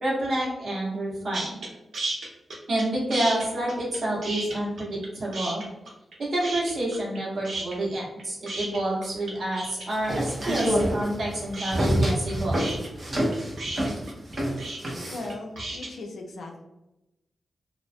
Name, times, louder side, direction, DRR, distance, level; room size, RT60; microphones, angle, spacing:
voice 1, 0.0-1.6 2.7-5.6 6.2-12.6, right 1 dB, 55° right, -5 dB, 0.9 m, -28 dB
sound 1, 1.3-1.7 1.9-2.8 3.1-5.1 5.3-6.1 6.4-7.2 7.4-15.9, right 2 dB, 90° right, 0.6 m, -34 dB
sound 2, 9.9-15.3, equal, 35° right, 0.5 m, -27 dB
voice 2, 15.0-16.6, left 2 dB, 85° left, 1 dB, 0.4 m, -38 dB
2.4 x 2.0 x 2.5 m, 0.95 s
wide cardioid pair, 175°, 0 cm